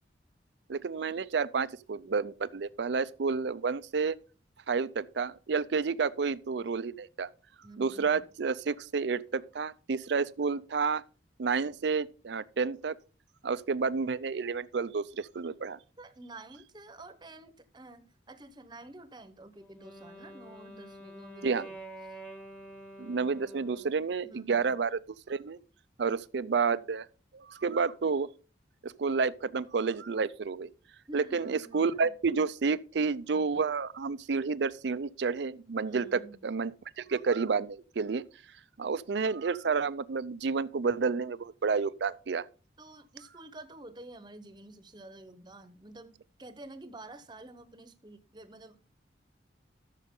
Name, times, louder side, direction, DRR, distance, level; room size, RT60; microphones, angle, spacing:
voice 1, 0.7-4.1 4.7-7.3 7.8-11.0 11.4-12.9 13.4-15.8 21.4-21.7 23.0-25.0 25.3-25.6 26.0-27.1 27.3-28.3 28.8-30.7 31.1-36.7 37.0-38.2 38.8-42.4, right 5 dB, 70° right, 0.5 m, -30 dB
voice 2, 7.6-8.2 16.0-21.8 22.1-22.2 24.2-24.8 31.1-32.1 35.8-36.4 42.8-46.1 46.4-48.8, right 2 dB, 25° right, 0.9 m, -49 dB
Wind instrument woodwind instrument, 19.5-24.1, right 1 dB, 5° left, 1.1 m, -48 dB
13.0 x 6.4 x 3.7 m
head